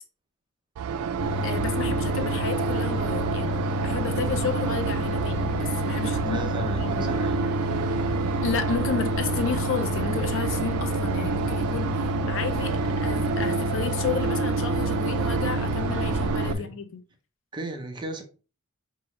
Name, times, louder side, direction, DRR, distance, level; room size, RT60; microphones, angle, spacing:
sound 1, 0.8-16.5, right 6 dB, 85° right, 0.3 m, -28 dB
sound 2, 1.2-16.6, left 4 dB, 80° left, 0.9 m, -31 dB
voice 1, 1.4-6.4 6.7-7.1 8.4-17.0, left 6 dB, 60° left, 0.5 m, -32 dB
voice 2, 6.1-7.9 16.5-16.8 17.5-18.2, right 1 dB, 20° right, 0.7 m, -37 dB
4.6 x 3.0 x 3.1 m
head